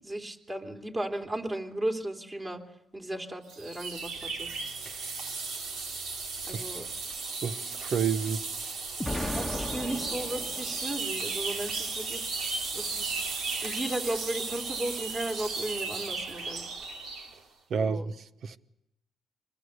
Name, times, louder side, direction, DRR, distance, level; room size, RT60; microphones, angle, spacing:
voice 1, 0.0-2.6 2.9-4.5 6.5-6.9 9.0-12.3 12.7-13.2 13.6-16.6 17.7-18.1, right 1 dB, 25° right, 3.3 m, -35 dB
sound 1, 3.5-17.3, right 4 dB, 80° right, 3.1 m, -35 dB
voice 2, 4.9-5.2 6.5-6.6 7.4-8.4 17.7-18.6, right 6 dB, 60° right, 1.1 m, -31 dB
Explosion, 9.0-11.1, left 1 dB, 5° left, 1.4 m, -35 dB
25.5 x 20.5 x 8.2 m
cardioid pair, 90°, 0 cm